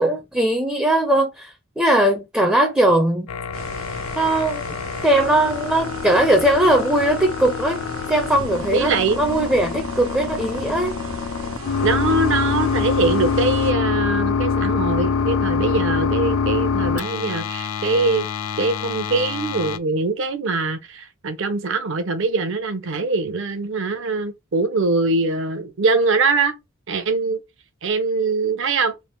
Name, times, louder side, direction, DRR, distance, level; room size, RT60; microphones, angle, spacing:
voice 1, 0.0-3.3 4.2-4.6 5.0-7.8 8.1-11.0, right 1 dB, 5° right, 0.4 m, -19 dB
sound 1, 3.3-19.8, left 5 dB, 90° left, 0.4 m, -25 dB
sound 2, 3.5-13.7, right 3 dB, 90° right, 1.2 m, -37 dB
voice 2, 8.7-9.2 11.8-18.3 18.6-26.5 26.9-27.4 27.8-28.9, right 3 dB, 60° right, 0.7 m, -22 dB
3.3 x 2.5 x 4.4 m
head